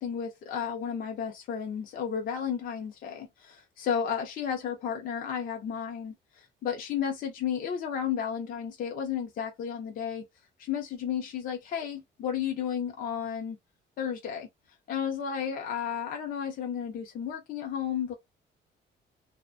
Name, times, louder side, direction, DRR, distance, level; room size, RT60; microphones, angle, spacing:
voice 1, 0.0-10.2 10.6-13.6 14.0-14.5 14.9-18.1, left 8 dB, 45° left, 0.5 m, -33 dB
2.4 x 2.1 x 2.5 m
cardioid pair, 175°, 20 cm